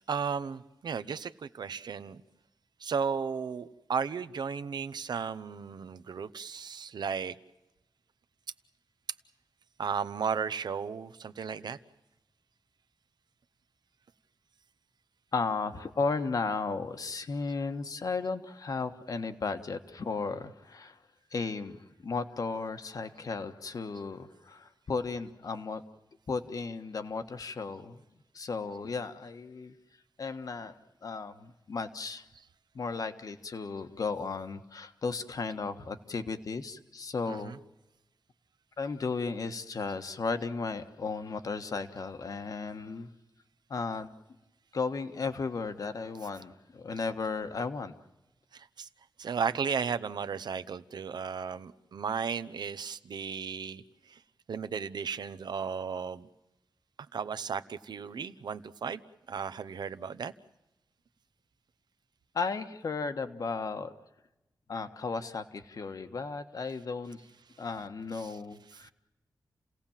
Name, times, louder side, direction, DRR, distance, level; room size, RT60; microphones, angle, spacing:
voice 1, 0.0-2.2 2.8-7.4 9.8-11.8 32.4-32.5 37.3-37.6 47.0-47.1 48.5-48.9 49.2-54.2 54.5-56.3 57.1-59.0 59.3-60.3 68.1-68.9, right 6 dB, 70° right, 13 dB, 0.9 m, -35 dB
voice 2, 15.3-21.0 21.3-25.8 26.3-28.0 28.3-29.7 30.2-30.7 31.0-32.2 32.7-37.5 38.8-43.1 43.7-44.1 44.7-47.9 62.3-63.9 64.7-67.2 67.6-68.9, left 4 dB, 55° left, 9 dB, 1.4 m, -35 dB
29.5 x 17.5 x 7.3 m, 0.98 s
wide cardioid pair, 175°, 7 cm